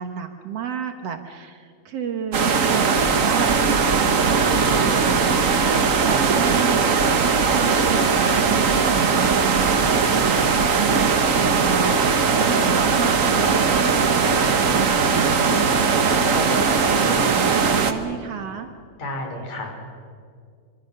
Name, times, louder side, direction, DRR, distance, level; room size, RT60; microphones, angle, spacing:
voice 1, 0.0-6.9 7.2-15.6 16.6-18.7, right 8 dB, 60° right, 6 dB, 2.1 m, -31 dB
sound 1, 2.3-17.9, right 5 dB, 80° right, 0.7 m, -19 dB
voice 2, 11.3-11.6 16.1-16.7 17.0-17.2 19.0-19.8, left 1 dB, 65° left, 3 dB, 5.4 m, -33 dB
25.5 x 25.5 x 6.6 m, 2.1 s
omnidirectional pair, 3.5 m